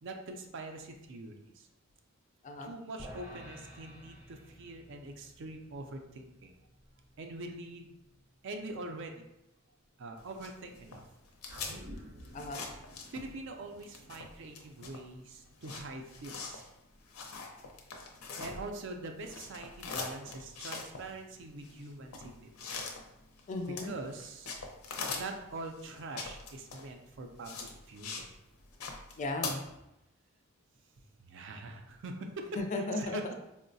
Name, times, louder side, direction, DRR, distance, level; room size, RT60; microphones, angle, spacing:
voice 1, 0.0-1.7 2.6-6.5 7.2-8.0 8.4-9.2 10.0-11.0 13.1-16.6 18.4-22.5 23.8-24.6 25.2-28.3 31.0-33.3, right 2 dB, 60° right, 4 dB, 0.4 m, -44 dB
voice 2, 2.4-2.7 12.3-12.6 23.5-23.9 29.2-29.7 32.6-33.3, left 2 dB, 35° left, 5 dB, 0.3 m, -36 dB
sound 1, 3.0-9.4, equal, 10° right, 0.7 m, -54 dB
sound 2, 10.2-13.5 13.8-18.9 19.2-28.3 28.6-29.5, left 4 dB, 90° left, 0.6 m, -42 dB
sound 3, 11.5-16.1 16.4-16.5, equal, 90° right, 0.7 m, -52 dB
4.6 x 2.1 x 2.6 m, 0.88 s
head